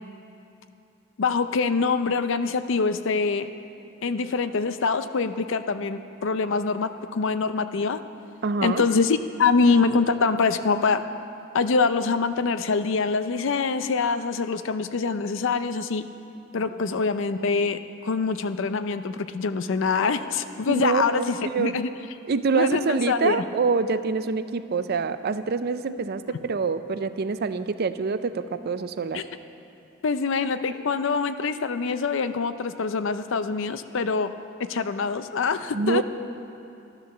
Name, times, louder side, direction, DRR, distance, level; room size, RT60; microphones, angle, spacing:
voice 1, 1.2-3.5 4.0-8.0 8.6-11.0 11.5-16.0 16.5-17.8 18.0-21.9 22.6-23.4 29.1-29.2 30.0-34.3 34.6-36.0, left 4 dB, 65° left, 11 dB, 0.5 m, -24 dB
voice 2, 8.4-8.8 16.8-16.9 20.7-21.8 22.3-29.2 35.7-36.0, right 4 dB, 50° right, 12 dB, 0.5 m, -26 dB
12.5 x 10.5 x 6.7 m, 2.7 s
head